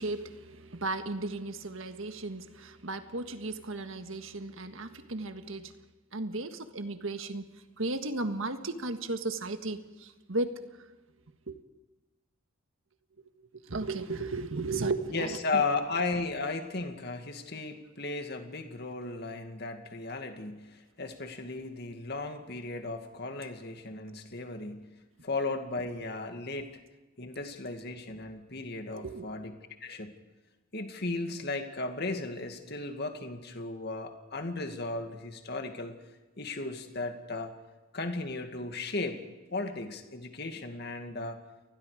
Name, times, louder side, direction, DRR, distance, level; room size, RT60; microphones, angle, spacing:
voice 1, 0.0-5.7 6.1-7.4 7.8-10.5 11.5-11.6 13.7-15.6 28.9-29.3, right 2 dB, 70° right, 8 dB, 1.6 m, -35 dB
voice 2, 15.1-25.0 25.2-26.8 27.2-29.5 29.8-30.2 30.7-35.9 36.4-37.5 37.9-39.2 39.5-41.4, left 3 dB, 50° left, 5 dB, 2.2 m, -35 dB
29.0 x 20.0 x 5.1 m, 1.2 s
head